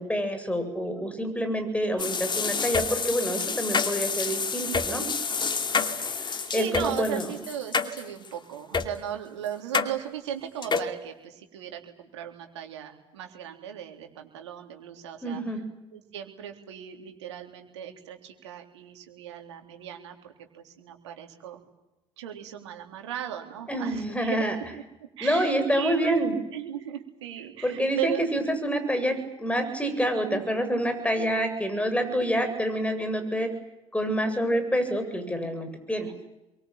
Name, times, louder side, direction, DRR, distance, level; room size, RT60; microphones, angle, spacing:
voice 1, 0.0-5.1 6.2-7.3 15.2-15.6 23.7-24.6 25.2-26.3 27.6-33.5 33.9-36.1, equal, 10° left, 9 dB, 7.9 m, -27 dB
sound 1, 2.0-8.3 8.7-8.9 9.7-9.9 10.6-10.9, left 5 dB, 35° left, 2.6 m, -28 dB
voice 2, 6.5-15.6 15.9-21.6 22.2-24.7 25.2-26.2 26.5-28.4 30.2-30.7, right 10 dB, 85° right, 4 dB, 3.7 m, -37 dB
27.5 x 23.5 x 9.0 m, 0.95 s
hypercardioid pair, 60°, 14 cm